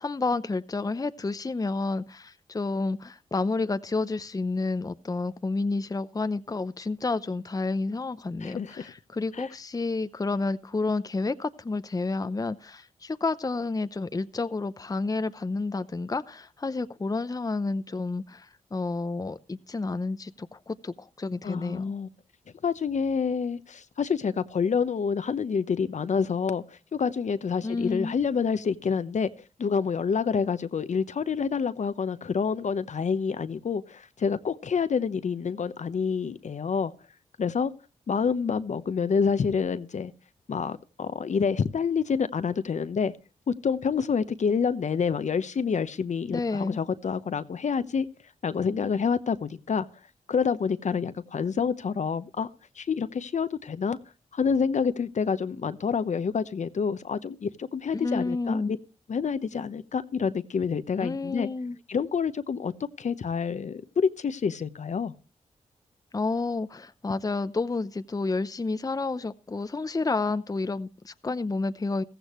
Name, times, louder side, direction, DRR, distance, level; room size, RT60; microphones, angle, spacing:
voice 1, 0.0-21.9 27.6-28.2 46.3-46.8 57.9-58.8 61.0-61.8 66.1-72.0, left 3 dB, 25° left, 0.7 m, -30 dB
voice 2, 8.4-8.9 9.3-9.5 21.4-22.1 22.6-29.3 29.6-36.9 37.4-37.7 38.1-40.1 40.5-43.1 43.5-48.1 48.4-49.9 50.3-52.5 52.7-54.0 54.3-58.8 59.1-61.5 61.9-62.7 63.0-65.1, left 6 dB, 60° left, 0.9 m, -27 dB
15.0 x 14.5 x 3.1 m
cardioid pair, 45°, 14 cm